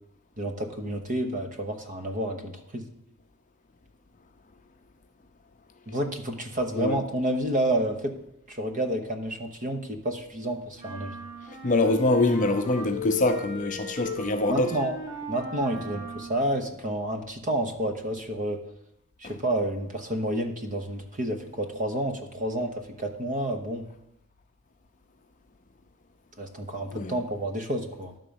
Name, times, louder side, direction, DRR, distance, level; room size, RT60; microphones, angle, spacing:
voice 1, 0.4-2.9 5.9-8.1 8.5-11.1 14.5-14.9 15.3-18.6 19.2-23.9 26.4-28.1, right 1 dB, 35° right, 1.0 m, -30 dB
sound 1, 10.8-16.5, left 1 dB, 15° right, 2.1 m, -38 dB
voice 2, 11.6-14.8 19.2-19.3 26.9-27.2, left 2 dB, 35° left, 0.6 m, -24 dB
11.5 x 3.9 x 7.0 m
head